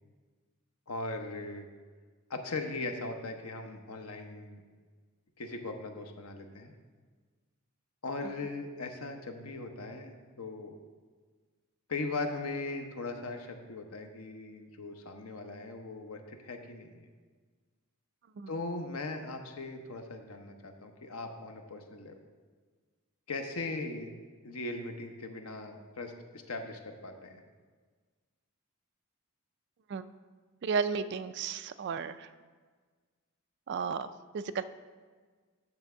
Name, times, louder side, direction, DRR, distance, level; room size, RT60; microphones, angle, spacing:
voice 1, 0.9-1.7 2.3-4.6 5.4-6.7 8.0-10.8 11.9-17.1 18.5-22.1 23.3-24.1 24.4-27.4, left 3 dB, 85° left, 5 dB, 0.8 m, -39 dB
voice 2, 30.6-32.3 33.7-34.6, right 5 dB, 55° right, 11 dB, 0.3 m, -33 dB
8.9 x 3.4 x 6.8 m, 1.5 s
head